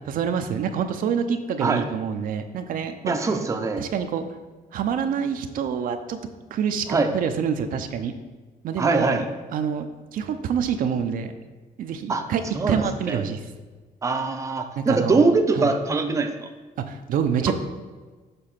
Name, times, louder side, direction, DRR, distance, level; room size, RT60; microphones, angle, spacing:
voice 1, 0.0-3.1 3.8-4.2 4.7-6.2 6.5-6.9 7.1-8.1 8.6-9.2 9.5-9.9 10.1-11.3 11.8-13.4 14.8-15.3 15.5-15.7 16.9-17.5, right 7 dB, 65° right, 7 dB, 0.6 m, -26 dB
voice 2, 3.1-3.9 6.9-7.1 8.8-9.3 12.1-12.2 12.5-13.2 14.0-16.3 17.5-17.6, right 3 dB, 20° right, 5 dB, 0.6 m, -22 dB
6.8 x 4.1 x 5.7 m, 1.3 s
cardioid pair, 135°, 15 cm